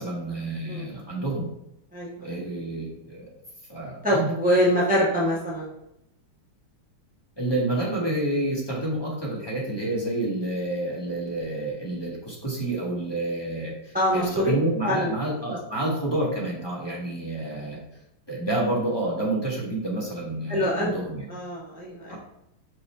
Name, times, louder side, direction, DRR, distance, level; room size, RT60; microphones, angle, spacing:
voice 1, 0.0-1.5 2.2-3.2 3.7-4.3 7.4-17.8 18.3-21.2 22.1-22.2, right 1 dB, 15° left, -4 dB, 1.3 m, -29 dB
voice 2, 1.9-2.4 4.0-5.7 13.9-14.5 14.8-15.1 20.5-21.0 21.3-22.1, equal, 10° right, -6 dB, 0.6 m, -24 dB
5.3 x 4.6 x 4.3 m, 0.83 s
omnidirectional pair, 2.4 m